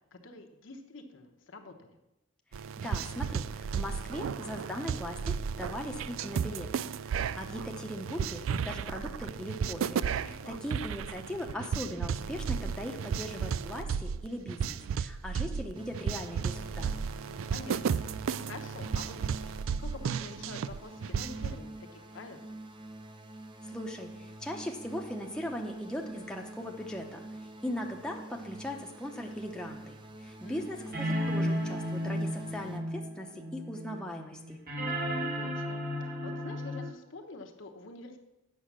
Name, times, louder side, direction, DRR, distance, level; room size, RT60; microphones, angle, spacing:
voice 1, 0.1-2.0 10.2-10.7 17.2-19.2 19.4-19.5 19.8-22.4 30.4-31.1 35.3-38.2, left 3 dB, 65° left, 3 dB, 1.0 m, -47 dB
sound 1, 2.5-21.6, right 7 dB, 80° right, 0.3 m, -34 dB
voice 2, 2.8-16.9 23.7-27.2 27.6-33.3 33.5-34.6, equal, 5° left, 0 dB, 0.8 m, -39 dB
sound 2, 15.8-32.8, right 1 dB, 25° right, 0.7 m, -47 dB
sound 3, 29.3-29.4 30.9-36.9, equal, 45° right, 2.0 m, -33 dB
8.6 x 6.2 x 6.1 m, 0.97 s
head